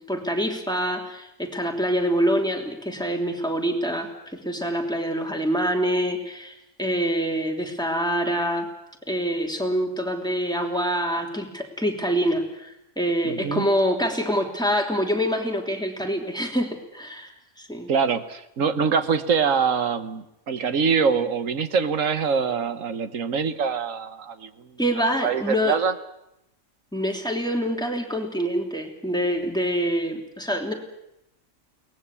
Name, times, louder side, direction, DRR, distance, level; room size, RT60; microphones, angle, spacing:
voice 1, 0.0-8.7 9.1-17.9 24.8-25.8 26.9-30.7, equal, 5° left, 2 dB, 3.1 m, -26 dB
voice 2, 13.2-13.7 17.9-24.5 25.2-25.9, right 6 dB, 85° right, 10 dB, 1.7 m, -24 dB
22.5 x 19.0 x 8.4 m, 0.83 s
omnidirectional pair, 1.3 m